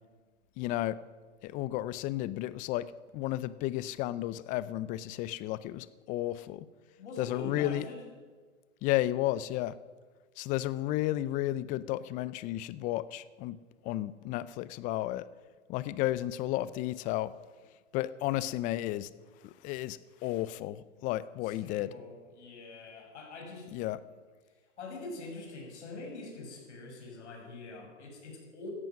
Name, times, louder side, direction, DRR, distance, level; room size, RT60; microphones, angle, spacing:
voice 1, 0.6-1.0 1.4-6.7 7.2-7.8 8.8-9.7 10.4-13.6 13.8-15.3 15.7-17.3 17.9-19.1 19.4-21.9 23.7-24.0, left 15 dB, 20° left, 18 dB, 0.5 m, -33 dB
voice 2, 7.0-8.0 21.4-23.7 24.8-28.7, left 3 dB, 70° left, 1 dB, 6.9 m, -44 dB
17.5 x 14.0 x 6.0 m, 1.5 s
hypercardioid pair, 120°, 36 cm